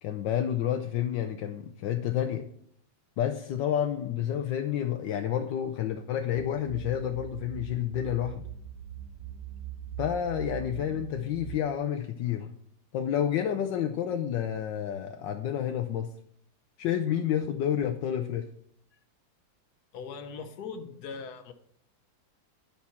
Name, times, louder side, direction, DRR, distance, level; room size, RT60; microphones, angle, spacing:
voice 1, 0.0-2.5 3.2-8.5 10.0-12.5 12.9-16.1 16.8-18.5, left 10 dB, 75° left, 1.2 m, -29 dB
sound 1, 6.4-11.6, right 9 dB, 70° right, 0.9 m, -41 dB
voice 2, 19.9-21.5, left 5 dB, 60° left, 1.4 m, -40 dB
10.5 x 5.7 x 4.3 m
omnidirectional pair, 2.1 m